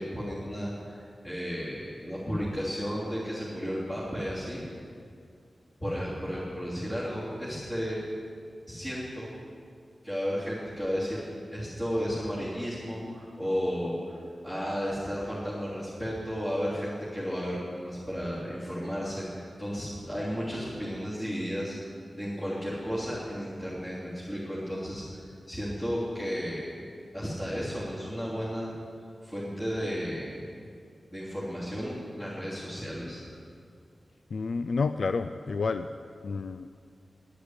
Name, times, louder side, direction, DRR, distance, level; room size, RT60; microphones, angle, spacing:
voice 1, 0.0-4.6 5.8-8.0 8.7-9.3 10.0-11.3 11.5-14.2 14.4-26.6 27.1-28.7 29.2-30.4 31.1-33.4, equal, 15° left, -10 dB, 3.3 m, -33 dB
voice 2, 34.3-35.9 36.2-36.7, left 4 dB, 70° left, 10 dB, 0.4 m, -29 dB
11.0 x 10.0 x 9.7 m, 2.3 s
wide cardioid pair, 130°, 0 cm